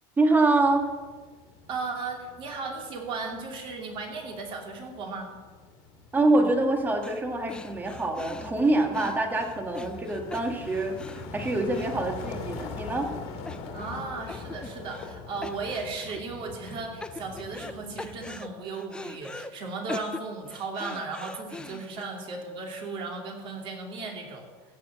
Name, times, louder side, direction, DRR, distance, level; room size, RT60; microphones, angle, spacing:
voice 1, 0.2-0.9 6.1-13.1, right 2 dB, 15° right, 4 dB, 1.6 m, -25 dB
sound 1, 0.6-18.4, left 4 dB, 55° left, 2.2 m, -43 dB
voice 2, 1.7-5.3 13.7-24.5, right 4 dB, 40° right, 1 dB, 2.9 m, -36 dB
sound 2, 7.0-7.2 7.5-12.7 13.0-13.1 13.5-14.0 14.3-15.1 15.4-16.2 16.6-17.7 18.0-19.5 19.9-22.0, left 2 dB, 5° left, 0.4 m, -42 dB
15.5 x 7.0 x 7.5 m, 1.4 s
cardioid pair, 155°, 13 cm